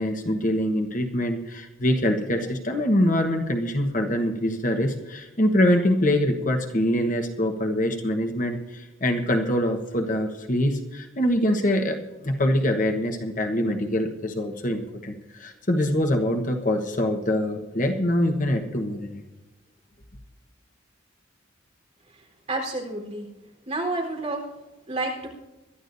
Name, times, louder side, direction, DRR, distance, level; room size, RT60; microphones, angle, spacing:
voice 1, 0.0-19.2, left 1 dB, 40° left, 4 dB, 1.2 m, -24 dB
voice 2, 22.5-23.3 23.7-24.4 24.9-25.3, right 2 dB, 35° right, -2 dB, 3.9 m, -29 dB
22.5 x 12.0 x 2.7 m, 1.1 s
head